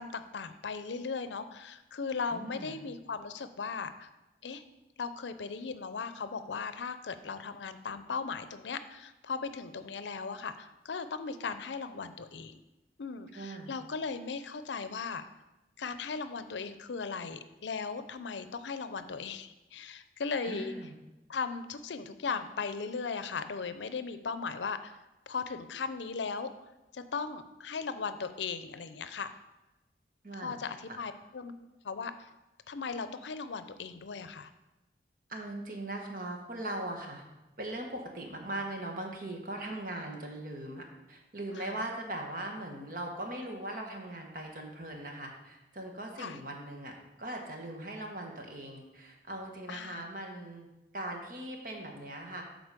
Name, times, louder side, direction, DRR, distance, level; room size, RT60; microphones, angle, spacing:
voice 1, 0.0-4.1 4.4-4.6 5.0-12.6 13.0-15.2 15.8-20.7 21.3-25.0 25.3-26.5 26.9-29.3 30.3-31.5 31.8-32.3 32.7-34.5 41.5-41.7 46.2-46.4 49.7-50.0, left 5 dB, 85° left, 11 dB, 0.5 m, -37 dB
voice 2, 2.3-2.8 13.3-13.7 20.4-21.0 30.2-30.6 35.3-37.2 37.6-46.9 47.2-50.7 50.9-52.4, right 1 dB, 50° right, 2 dB, 1.3 m, -40 dB
8.0 x 4.0 x 6.6 m, 1.0 s
head